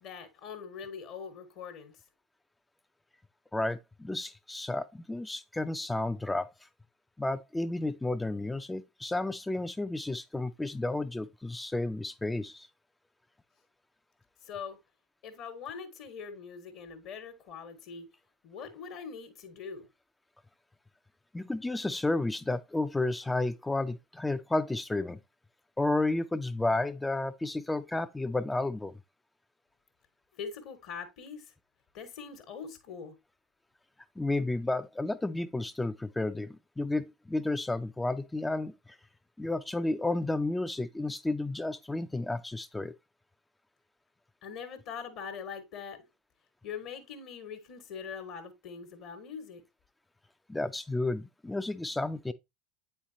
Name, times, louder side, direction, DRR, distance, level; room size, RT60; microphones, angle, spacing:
voice 1, 0.0-2.0 14.4-14.8 15.2-18.1 18.4-19.9 30.3-31.5 31.9-33.2 44.4-46.0 46.6-49.6, left 6 dB, 55° left, 1.2 m, -42 dB
voice 2, 3.5-6.5 7.2-12.7 21.3-25.2 25.8-29.0 34.2-39.0 39.4-42.9 50.5-52.3, left 2 dB, 10° left, 0.4 m, -32 dB
8.2 x 4.4 x 2.6 m
hypercardioid pair, 80°, 0 cm